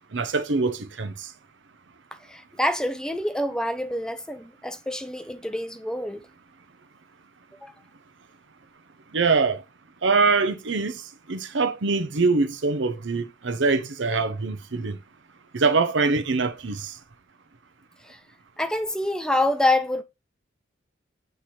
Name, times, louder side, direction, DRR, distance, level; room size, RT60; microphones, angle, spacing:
voice 1, 0.1-1.3 9.1-9.6 10.0-11.0 11.3-15.0 15.5-17.0, right 4 dB, 75° right, 0.8 m, -23 dB
voice 2, 2.3-6.2 7.6-7.7 18.0-18.2 18.6-20.0, left 1 dB, 5° left, 0.4 m, -26 dB
7.7 x 3.4 x 4.3 m
head